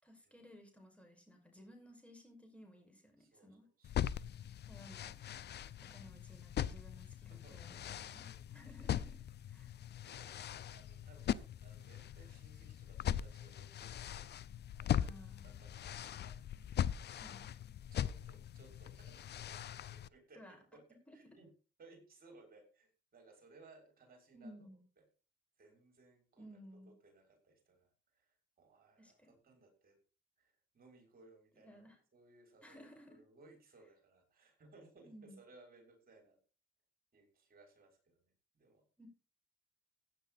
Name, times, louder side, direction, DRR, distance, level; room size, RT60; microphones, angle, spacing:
voice 1, 0.0-3.6 4.6-5.2 5.8-9.2 9.5-9.7 14.9-15.5 17.1-17.5 20.4-20.6 21.1-21.4 24.3-24.8 26.4-26.9 29.0-29.3 31.6-32.0 32.6-33.2 35.0-35.4 39.0-39.1, equal, 5° left, 3 dB, 5.8 m, -57 dB
voice 2, 3.2-4.4 7.3-7.8 8.2-8.5 10.0-10.3 10.7-14.4 14.8-15.1 15.4-16.7 17.9-20.8 21.1-21.5 21.8-24.5 25.6-26.5 26.9-30.0 30.4-36.4 37.1-38.8, right 3 dB, 50° right, 1 dB, 6.3 m, -63 dB
sound 1, 3.8-20.1, left 10 dB, 55° left, 0.7 m, -41 dB
16.0 x 9.3 x 4.1 m, 0.37 s
cardioid pair, 90°, 20 cm